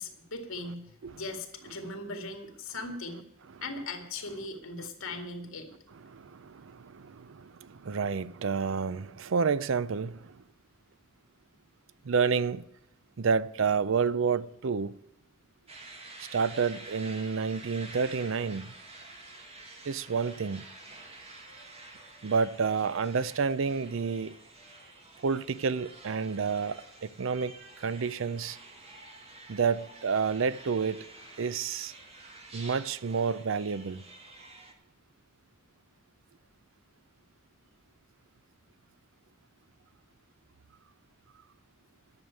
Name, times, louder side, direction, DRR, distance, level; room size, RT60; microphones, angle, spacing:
voice 1, 0.0-3.2 3.6-5.9, left 2 dB, 90° left, 2.2 m, -39 dB
voice 2, 6.1-10.4 12.0-12.6 13.2-14.9 16.3-18.7 19.9-20.6 22.2-24.3 25.2-28.6 29.5-31.0 31.4-31.9 32.5-34.0, right 5 dB, 65° right, 0.5 m, -29 dB
sound 1, 15.7-34.7, right 2 dB, 30° right, 2.0 m, -49 dB
10.5 x 7.2 x 9.5 m
head